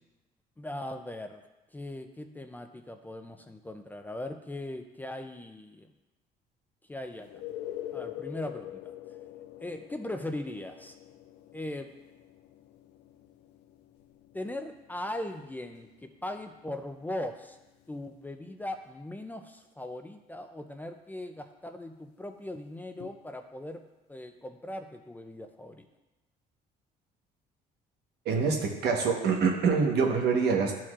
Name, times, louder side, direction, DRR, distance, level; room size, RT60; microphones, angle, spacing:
voice 1, 0.6-1.4 1.7-5.9 6.9-7.3 7.9-8.9 9.6-11.0 11.5-11.9 14.3-17.6 17.9-23.8 24.1-25.9, left 1 dB, 10° left, 6 dB, 0.4 m, -39 dB
sound 1, 7.2-18.7 23.0-23.1, left 13 dB, 80° left, 0.5 m, -45 dB
voice 2, 28.2-30.7, right 5 dB, 75° right, 2 dB, 1.2 m, -25 dB
11.5 x 4.4 x 2.4 m, 1.0 s
cardioid pair, 110°, 17 cm